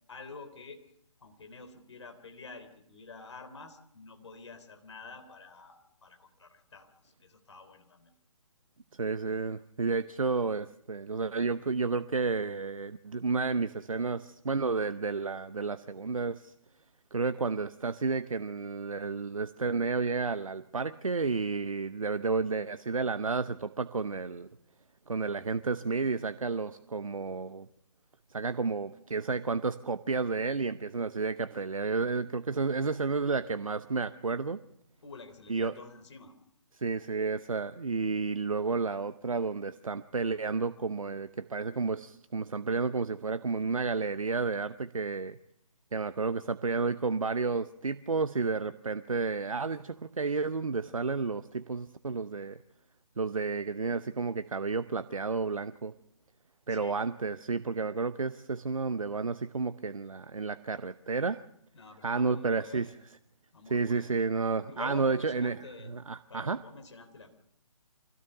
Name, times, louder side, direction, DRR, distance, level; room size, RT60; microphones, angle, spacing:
voice 1, 0.1-0.8 1.2-8.1 35.0-36.3 56.7-57.0 61.7-63.0 63.5-64.1 64.7-66.0 66.3-67.3, left 3 dB, 55° left, 7 dB, 3.4 m, -48 dB
voice 2, 8.9-16.5 17.1-24.5 25.1-27.7 28.3-34.6 35.5-35.7 36.7-45.4 45.9-52.6 53.2-55.9 56.7-61.4 62.0-62.9 63.7-66.6, right 4 dB, 75° right, 13 dB, 0.8 m, -31 dB
25.0 x 16.5 x 6.7 m, 0.73 s
figure-of-eight pair, 145°, 18 cm